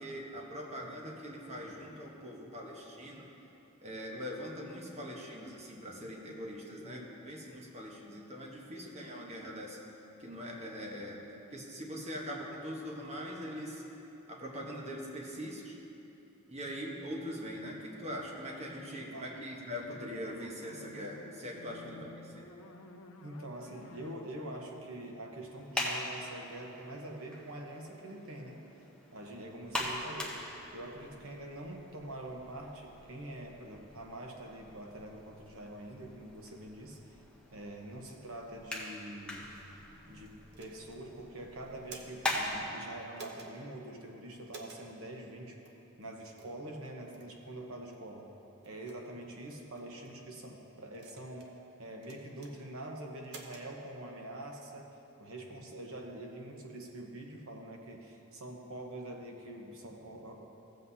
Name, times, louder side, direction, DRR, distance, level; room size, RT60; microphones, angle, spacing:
voice 1, 0.0-3.3 3.8-9.8 10.2-11.2 11.5-13.8 14.3-15.8 16.5-22.5, equal, 30° right, -1 dB, 1.1 m, -42 dB
voice 2, 18.7-19.3 21.9-22.0 23.2-28.6 29.1-37.0 37.5-39.5 40.1-45.6 46.0-48.3 48.6-54.8 55.2-60.5, right 1 dB, 65° right, 1 dB, 1.1 m, -45 dB
sound 1, 20.7-25.8, left 2 dB, 65° left, 0.7 m, -54 dB
sound 2, 25.5-42.6, left 1 dB, 5° left, 0.8 m, -42 dB
sound 3, 40.5-41.0 41.7-42.4 43.1-43.5 44.5-44.8 45.6-45.8 46.4-46.6 47.1-47.3 47.9-48.0 48.6-49.0 49.7-50.1 50.9-51.5 52.0-52.5 53.2-53.7, right 3 dB, 50° right, 0.8 m, -51 dB
15.0 x 7.8 x 2.8 m, 3.0 s
head